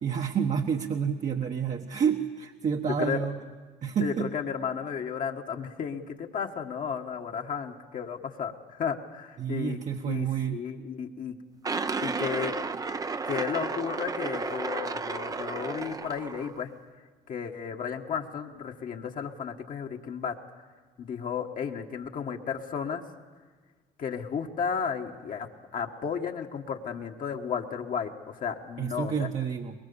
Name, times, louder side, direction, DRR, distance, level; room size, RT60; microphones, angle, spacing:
voice 1, 0.0-3.4 3.8-4.3 9.4-10.6 28.8-29.7, right 7 dB, 45° right, 2 dB, 1.2 m, -29 dB
voice 2, 2.8-3.2 4.0-9.8 10.0-11.4 12.0-12.5 13.2-16.7 17.3-20.3 21.0-23.0 24.0-25.5 25.7-29.3, left 7 dB, 50° left, 2 dB, 1.6 m, -33 dB
sound 1, 11.6-16.6, right 4 dB, 20° right, 0.7 m, -33 dB
23.0 x 21.5 x 7.0 m, 1.5 s
cardioid pair, 110°, 17 cm